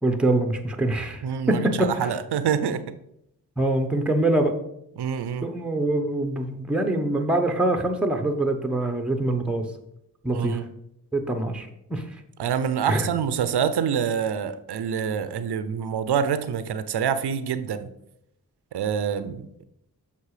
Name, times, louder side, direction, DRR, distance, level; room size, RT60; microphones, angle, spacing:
voice 1, 0.0-1.2 1.5-1.7 2.0-2.1 3.6-4.5 5.4-9.7 10.2-10.6 11.1-12.0 12.8-13.1, right 2 dB, 5° right, 5 dB, 1.1 m, -24 dB
voice 2, 1.2-2.8 5.0-5.5 10.3-10.7 12.4-17.9 18.7-19.6, right 7 dB, 75° right, 12 dB, 0.7 m, -26 dB
6.7 x 5.5 x 5.0 m, 0.80 s
cardioid pair, 45°, 40 cm